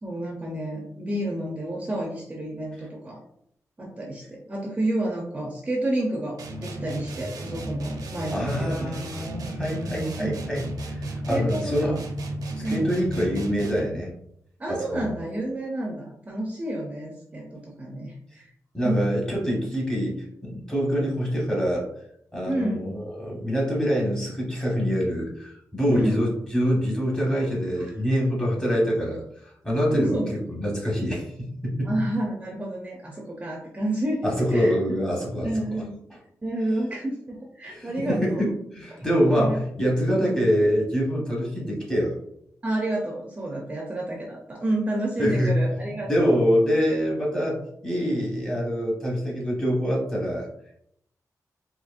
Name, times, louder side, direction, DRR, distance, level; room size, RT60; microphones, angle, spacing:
voice 1, 0.0-3.2 3.8-9.0 10.2-10.3 11.3-11.9 12.6-12.8 14.6-18.5 18.8-19.0 22.5-22.9 25.9-26.2 27.7-28.0 29.9-30.4 31.8-34.7 35.4-36.0 36.4-38.4 38.9-39.6 40.1-40.3 42.6-46.4, right 1 dB, 20° right, -2 dB, 0.5 m, -30 dB
sound 1, 6.4-14.0, right 1 dB, 80° right, 0.6 m, -34 dB
voice 2, 8.3-12.0 12.6-14.1 14.7-15.1 18.7-21.9 22.3-30.2 30.5-31.9 34.2-35.8 37.6-42.1 45.2-50.5, equal, 10° left, -4 dB, 1.1 m, -25 dB
4.2 x 2.8 x 2.4 m, 0.72 s
wide cardioid pair, 175°, 6 cm